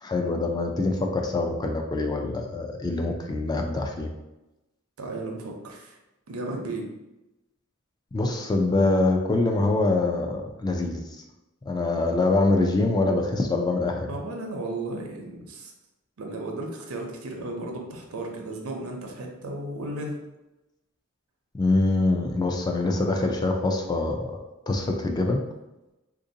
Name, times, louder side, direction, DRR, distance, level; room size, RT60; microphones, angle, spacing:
voice 1, 0.0-4.1 8.1-11.0 11.7-14.1 21.5-24.4 24.7-25.4, left 2 dB, 20° left, 3 dB, 0.3 m, -24 dB
voice 2, 5.0-6.0 6.3-6.8 14.1-15.7 16.2-20.2, right 2 dB, 85° right, 2 dB, 0.6 m, -34 dB
3.5 x 2.6 x 2.6 m, 0.98 s
head